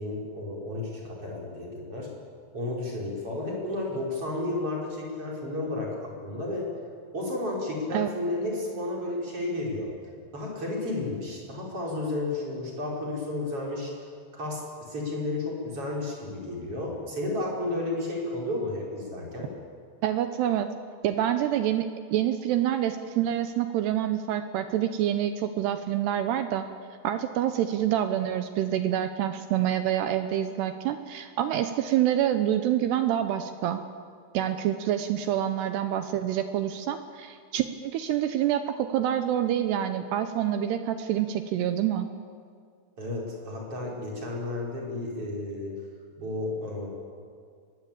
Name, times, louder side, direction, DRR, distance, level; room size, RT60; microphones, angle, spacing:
voice 1, 0.0-2.1 2.5-6.7 7.1-9.9 10.3-13.9 14.3-19.5 43.0-45.7 46.2-46.9, left 2 dB, 30° right, -3 dB, 5.5 m, -32 dB
voice 2, 20.0-20.7 21.0-26.7 27.0-33.8 34.3-42.1, right 11 dB, 80° right, 8 dB, 2.4 m, -27 dB
23.5 x 20.5 x 8.7 m, 2.2 s
omnidirectional pair, 5.8 m